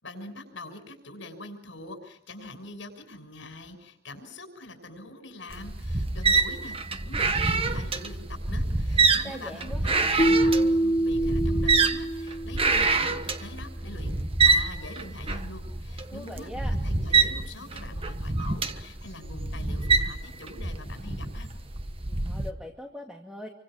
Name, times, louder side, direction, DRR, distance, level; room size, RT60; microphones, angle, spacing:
voice 1, 0.0-21.5, left 1 dB, 80° left, 7 dB, 6.1 m, -44 dB
sound 1, 5.5-22.5, right 4 dB, 30° right, 1.3 m, -26 dB
voice 2, 9.1-10.1 16.1-16.7 22.2-23.5, left 1 dB, 5° right, 1 dB, 2.2 m, -41 dB
Keyboard (musical), 10.2-13.0, right 1 dB, 30° left, 1.0 m, -25 dB
28.5 x 25.0 x 6.3 m, 0.67 s
head